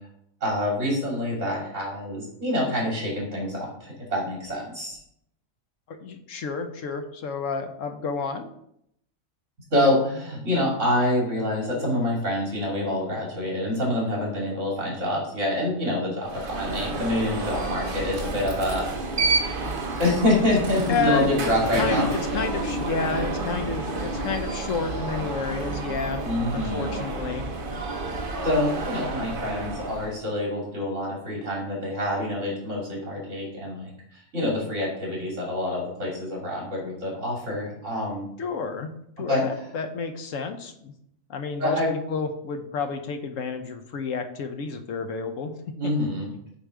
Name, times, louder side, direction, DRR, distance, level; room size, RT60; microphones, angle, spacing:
voice 1, 0.4-5.0 9.7-18.9 19.2-19.3 20.0-22.1 26.2-26.9 28.4-38.3 39.2-39.6 41.6-41.9 45.8-46.3, left 1 dB, 60° right, -3 dB, 3.2 m, -26 dB
voice 2, 5.9-8.5 20.9-21.3 21.8-26.2 26.5-27.5 38.4-38.9 39.2-40.9 41.3-41.8 42.1-45.7, left 5 dB, 75° left, 7 dB, 1.1 m, -30 dB
Alarm, 16.2-30.2, right 2 dB, 45° right, 1.1 m, -30 dB
8.2 x 3.9 x 4.9 m, 0.73 s
omnidirectional pair, 1.4 m